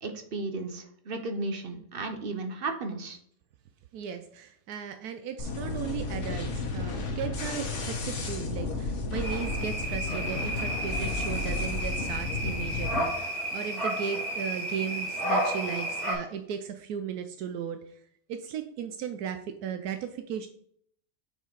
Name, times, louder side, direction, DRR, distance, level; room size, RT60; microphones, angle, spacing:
voice 1, 0.0-3.2, right 3 dB, 45° right, 7 dB, 0.9 m, -34 dB
voice 2, 3.9-18.0 18.3-20.5, right 8 dB, 80° right, 8 dB, 1.1 m, -36 dB
sound 1, 5.4-13.0, left 3 dB, 55° left, 1.4 m, -33 dB
sound 2, 9.2-16.1, right 1 dB, 25° right, 3.0 m, -32 dB
6.6 x 4.5 x 4.7 m, 0.65 s
omnidirectional pair, 1.6 m